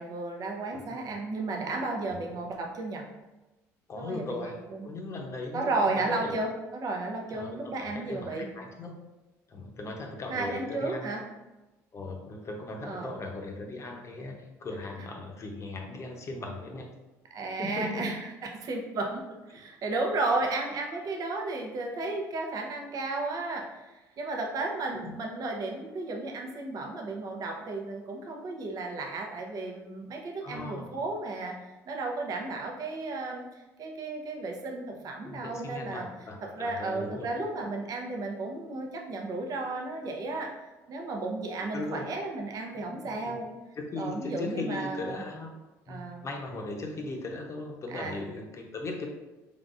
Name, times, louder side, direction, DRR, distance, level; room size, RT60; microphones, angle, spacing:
voice 1, 0.0-3.0 4.0-4.9 5.5-8.5 10.3-11.2 12.8-13.1 17.3-18.2 18.6-19.2 19.5-31.5 31.8-33.5 33.8-36.1 36.4-40.5 40.9-43.5 44.0-45.2 45.9-46.2 47.9-48.2, right 3 dB, 55° right, 1 dB, 0.8 m, -33 dB
voice 2, 2.1-2.4 3.9-6.3 7.3-9.0 9.5-11.1 11.9-16.9 17.6-18.1 19.5-19.6 25.0-25.2 30.4-31.0 35.2-37.3 41.7-42.1 42.7-43.4 43.7-45.5 45.9-49.1, left 2 dB, 40° left, 1 dB, 0.8 m, -38 dB
3.8 x 3.5 x 2.5 m, 1.1 s
supercardioid pair, 75°, 8 cm